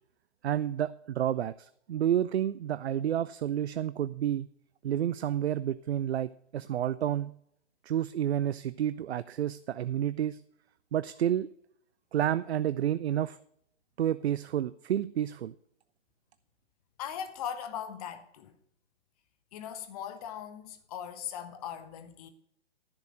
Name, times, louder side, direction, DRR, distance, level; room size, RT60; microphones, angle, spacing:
voice 1, 0.4-4.5 4.8-7.4 7.8-10.4 10.9-11.5 12.1-13.4 14.0-15.5, right 10 dB, 65° right, 0.5 m, -30 dB
voice 2, 17.0-18.6 19.5-22.3, left 9 dB, 35° left, 1.2 m, -39 dB
10.5 x 6.5 x 6.3 m
figure-of-eight pair, 130°, 35 cm